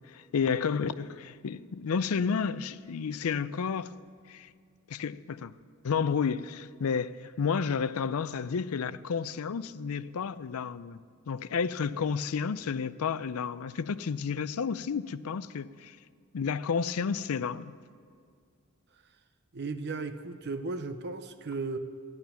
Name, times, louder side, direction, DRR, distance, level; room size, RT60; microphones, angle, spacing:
voice 1, 0.1-3.9 4.3-4.5 4.9-5.5 5.8-16.0 16.3-17.7, left 6 dB, 75° left, 0.4 m, -31 dB
voice 2, 19.5-21.8, right 3 dB, 50° right, 0.6 m, -35 dB
13.0 x 10.5 x 7.0 m
head